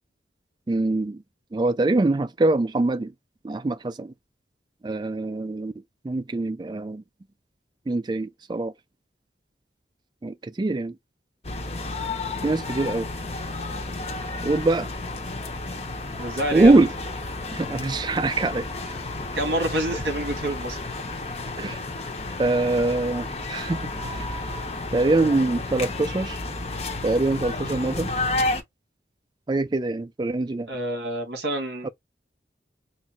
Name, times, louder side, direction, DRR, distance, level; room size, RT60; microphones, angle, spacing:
voice 1, 0.7-1.2 1.5-3.1 3.4-4.1 4.8-5.7 6.0-7.0 7.9-8.7 10.2-10.9 12.4-13.1 14.4-14.9 16.5-16.9 17.5-18.7 21.6-21.8 22.4-23.9 24.2-24.3 24.9-26.4 27.0-28.1 29.5-30.7 31.8-31.9, right 2 dB, 25° right, 0.3 m, -23 dB
sound 1, 11.4-28.6, left 2 dB, 35° left, 0.8 m, -31 dB
voice 2, 16.2-16.8 19.3-20.8 30.7-31.9, right 1 dB, 65° right, 1.7 m, -27 dB
3.9 x 2.0 x 4.4 m
head